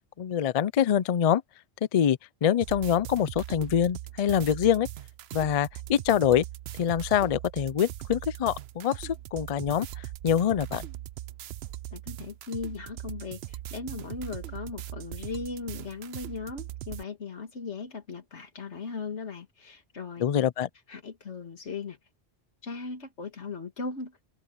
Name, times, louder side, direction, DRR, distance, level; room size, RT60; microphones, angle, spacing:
voice 1, 0.2-1.4 1.9-4.9 5.3-6.4 6.8-9.9 10.2-10.9 20.2-20.7, left 9 dB, 50° left, 0.4 m, -25 dB
sound 1, 2.6-17.0, right 13 dB, 70° right, 0.8 m, -40 dB
voice 2, 11.9-20.2 20.9-22.0 22.6-24.2, left 4 dB, 90° left, 2.2 m, -38 dB
omnidirectional pair, 1.1 m